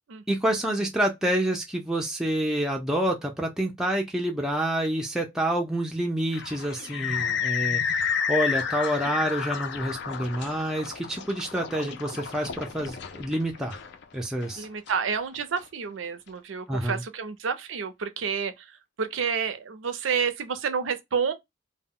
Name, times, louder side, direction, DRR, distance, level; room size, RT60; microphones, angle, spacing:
voice 1, 0.3-13.8 14.1-14.7 16.7-17.0, right 1 dB, 5° right, 0.4 m, -28 dB
sound 1, 6.3-15.6, left 7 dB, 60° left, 0.4 m, -31 dB
voice 2, 14.6-18.5 19.0-21.3, right 6 dB, 85° right, 0.5 m, -29 dB
2.1 x 2.0 x 3.6 m
head